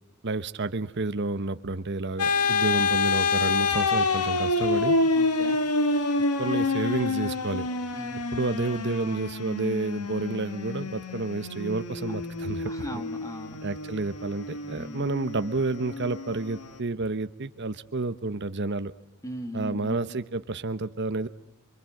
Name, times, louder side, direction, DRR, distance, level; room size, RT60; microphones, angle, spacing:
voice 1, 0.2-4.9 6.4-7.7 8.3-13.0 13.6-18.9 19.5-21.3, right 3 dB, 50° right, 11 dB, 0.9 m, -30 dB
sound 1, 2.2-16.8, left 3 dB, 90° left, 1.7 m, -28 dB
voice 2, 5.2-5.6 7.9-8.2 12.7-13.6 14.8-15.1 19.2-20.0, equal, 15° left, 7 dB, 2.3 m, -38 dB
28.0 x 24.5 x 7.8 m, 0.88 s
head